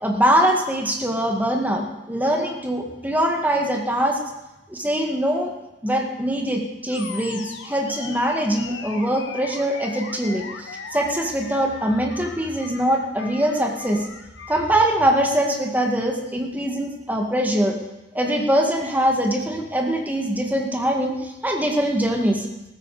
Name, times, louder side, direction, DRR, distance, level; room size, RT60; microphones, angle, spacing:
voice 1, 0.0-4.2 4.7-5.5 5.8-14.1 14.5-17.8 18.1-22.5, right 1 dB, 10° right, 1 dB, 1.8 m, -22 dB
Animal, 6.9-14.8, left 5 dB, 80° left, 1.5 m, -38 dB
15.0 x 13.5 x 4.9 m, 1.0 s
head